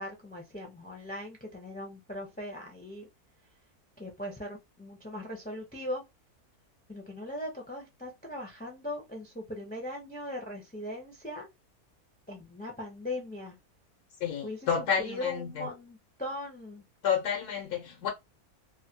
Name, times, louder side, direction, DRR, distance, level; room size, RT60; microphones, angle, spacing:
voice 1, 0.0-3.1 4.0-6.0 6.9-11.5 12.3-13.6 14.4-16.8, left 1 dB, 15° left, 0.3 m, -39 dB
voice 2, 14.2-15.7 17.0-18.1, left 7 dB, 90° left, 1.3 m, -30 dB
3.1 x 2.2 x 2.7 m
omnidirectional pair, 1.6 m